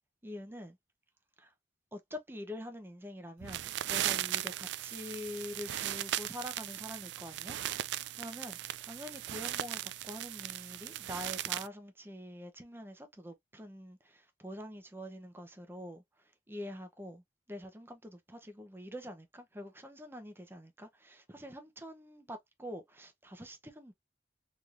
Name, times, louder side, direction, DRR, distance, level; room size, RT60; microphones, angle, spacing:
voice 1, 0.2-0.8 1.4-1.5 1.9-7.6 8.2-16.0 16.5-17.2 17.5-23.9, left 1 dB, 15° right, 0.8 m, -45 dB
sound 1, 3.4-11.7, right 13 dB, 70° right, 0.3 m, -37 dB
3.6 x 3.2 x 2.5 m
head